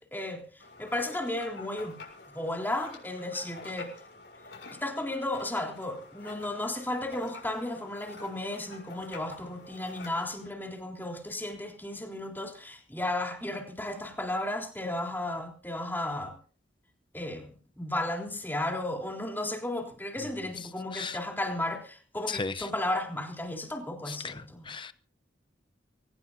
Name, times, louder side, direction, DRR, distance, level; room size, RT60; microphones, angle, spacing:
voice 1, 0.0-2.0 2.3-3.9 4.8-16.4 17.1-24.7, left 1 dB, 10° left, 3.7 m, -34 dB
sound 1, 0.6-10.5, left 3 dB, 65° left, 7.0 m, -48 dB
voice 2, 20.9-21.1 22.3-22.5 24.7-24.9, left 4 dB, 25° left, 0.8 m, -33 dB
23.5 x 18.5 x 2.8 m
head